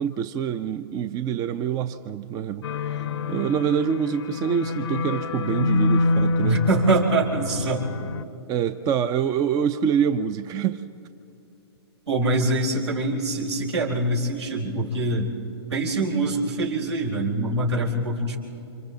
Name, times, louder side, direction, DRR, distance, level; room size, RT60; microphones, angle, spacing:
voice 1, 0.0-2.7 3.3-6.6 8.5-10.8, right 8 dB, 25° right, 11 dB, 0.6 m, -25 dB
sound 1, 2.6-8.2, left 2 dB, 75° left, 0.8 m, -26 dB
voice 2, 6.4-7.9 12.1-15.3 15.7-18.4, right 2 dB, 75° right, 0 dB, 4.5 m, -24 dB
29.5 x 26.0 x 4.0 m, 2.9 s
hypercardioid pair, 125°, 14 cm